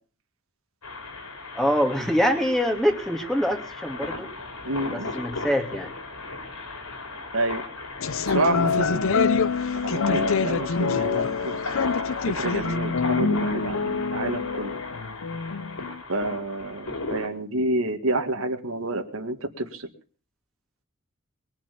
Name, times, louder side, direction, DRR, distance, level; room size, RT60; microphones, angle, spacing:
sound 1, 0.8-17.3, left 3 dB, 90° left, 4.1 m, -37 dB
voice 1, 1.5-4.3 4.9-5.9, equal, ahead, 3 dB, 2.6 m, -24 dB
voice 2, 4.6-5.2 7.3-7.6 8.2-9.3 9.8-11.6 12.1-14.8 16.1-19.9, right 2 dB, 70° right, 5 dB, 2.0 m, -29 dB
sound 2, 8.0-16.0, left 5 dB, 65° left, 0.7 m, -25 dB
21.5 x 7.3 x 8.5 m, 0.42 s
head